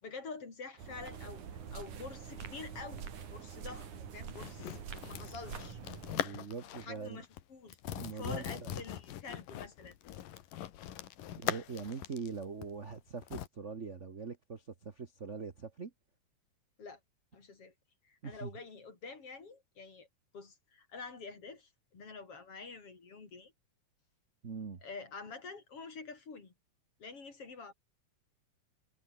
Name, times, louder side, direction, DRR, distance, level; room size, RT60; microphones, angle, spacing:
voice 1, 0.0-1.4 1.7-3.0 3.3-4.8 5.0-5.8 6.8-7.8 8.1-10.0 16.8-17.0 17.3-17.7 18.0-20.1 20.3-23.5 24.8-26.5 27.0-27.7, left 4 dB, 45° left, 4.8 m, -47 dB
sound 1, 0.8-6.2, right 7 dB, 65° right, 4.2 m, -45 dB
sound 2, 4.4-7.0 7.2-7.4 7.7-13.5, left 12 dB, 85° left, 3.2 m, -41 dB
voice 2, 6.1-7.2 7.9-8.8 11.4-15.9 18.2-18.5 24.4-24.8, right 5 dB, 50° right, 0.8 m, -42 dB
omnidirectional pair, 3.8 m